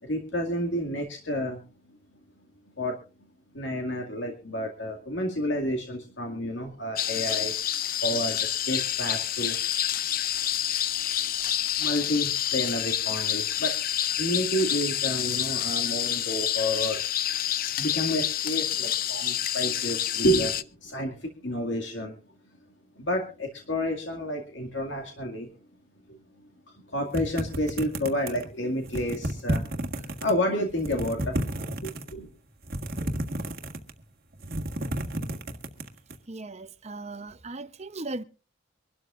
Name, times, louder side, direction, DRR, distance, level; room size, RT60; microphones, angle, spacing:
voice 1, 0.0-1.6 2.8-3.0 3.5-7.5 8.0-9.5 11.6-13.8 14.2-17.0 17.8-22.2 23.0-25.5 26.1-26.2 26.9-31.5 31.8-32.3, equal, 65° left, 2.1 m, -30 dB
sound 1, 7.0-20.6, left 11 dB, 45° left, 0.6 m, -28 dB
sound 2, 27.1-28.5 28.9-30.3 30.7-32.1 32.6-34.0 34.3-36.2, right 1 dB, 45° right, 1.6 m, -31 dB
voice 2, 36.3-38.2, right 2 dB, 30° right, 0.8 m, -37 dB
24.5 x 12.5 x 2.5 m
head